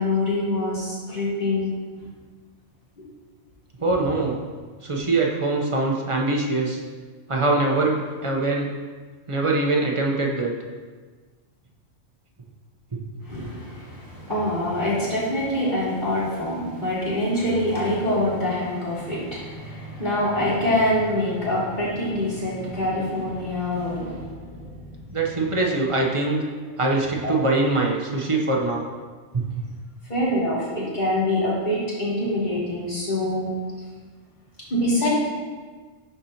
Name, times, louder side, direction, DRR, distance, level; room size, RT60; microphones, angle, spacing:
voice 1, 0.0-1.7 3.0-3.1 13.2-25.2 27.2-27.3 30.1-33.5 34.7-35.1, left 1 dB, 40° left, -8 dB, 2.4 m, -25 dB
voice 2, 3.8-4.4 4.8-6.8 7.3-8.0 8.2-8.7 9.3-10.5 12.9-13.0 25.1-26.4 26.8-28.8, right 2 dB, 30° right, -1 dB, 0.7 m, -23 dB
11.0 x 4.4 x 2.8 m, 1.4 s
omnidirectional pair, 1.3 m